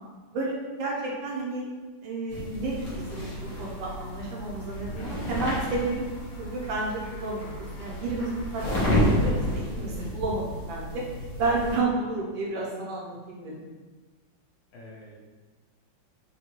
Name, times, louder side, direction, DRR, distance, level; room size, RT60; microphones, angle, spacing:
voice 1, 0.3-1.7 2.0-6.0 6.4-11.0 11.4-13.6, right 3 dB, 75° right, -4 dB, 1.5 m, -31 dB
sound 1, 2.3-11.8, equal, 50° left, 1.3 m, -31 dB
Run / Walk footsteps / Bell, 2.8-9.5, left 1 dB, 25° left, 0.3 m, -48 dB
voice 2, 14.7-15.1, left 1 dB, 70° left, -4 dB, 1.3 m, -45 dB
4.0 x 2.2 x 2.9 m, 1.3 s
omnidirectional pair, 2.2 m